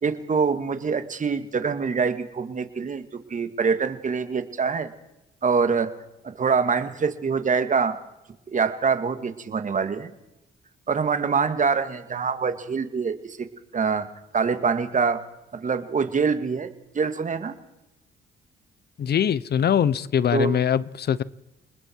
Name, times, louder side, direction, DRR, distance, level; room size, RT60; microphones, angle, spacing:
voice 1, 0.0-4.9 5.4-5.9 6.2-8.0 8.5-10.1 10.9-13.5 13.7-14.1 14.3-15.2 15.5-17.5 20.3-20.6, right 5 dB, 40° right, 9 dB, 2.2 m, -25 dB
voice 2, 19.0-21.2, left 8 dB, 55° left, 18 dB, 1.0 m, -22 dB
29.0 x 20.0 x 4.7 m, 0.93 s
cardioid pair, 90°, 20 cm